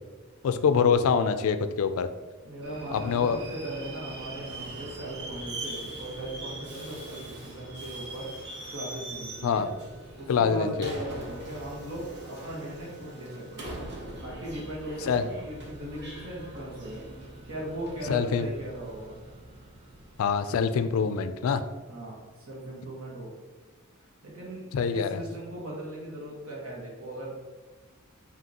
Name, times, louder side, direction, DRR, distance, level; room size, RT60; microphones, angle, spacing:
voice 1, 0.4-2.1 2.9-3.4 9.4-9.7 10.3-10.9 15.1-15.2 18.1-18.5 20.2-21.6 24.7-25.2, left 6 dB, 70° left, 10 dB, 0.3 m, -25 dB
voice 2, 2.4-8.3 8.7-9.7 10.2-13.6 14.2-17.0 17.4-19.2 21.9-23.3 24.2-27.3, right 1 dB, 70° right, -3 dB, 1.4 m, -38 dB
Subway metro underground, 2.6-21.1, right 2 dB, 55° right, 0.8 m, -42 dB
5.2 x 2.8 x 2.8 m, 1.3 s
head